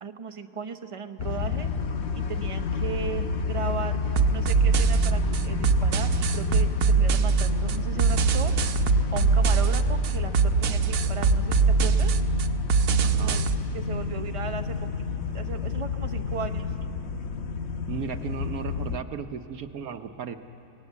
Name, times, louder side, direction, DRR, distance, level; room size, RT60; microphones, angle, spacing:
voice 1, 0.0-1.7 2.3-4.0 4.3-8.5 9.1-12.1 13.1-13.4 13.7-14.9 15.3-16.7, right 6 dB, 25° right, 6 dB, 0.7 m, -36 dB
sound 1, 1.2-19.0, left 6 dB, 50° left, 1.0 m, -30 dB
sound 2, 4.2-13.6, right 5 dB, 85° right, 1.3 m, -23 dB
voice 2, 13.0-13.4 17.9-20.4, right 7 dB, 70° right, 7 dB, 1.2 m, -35 dB
28.0 x 18.5 x 8.2 m, 2.9 s
omnidirectional pair, 1.6 m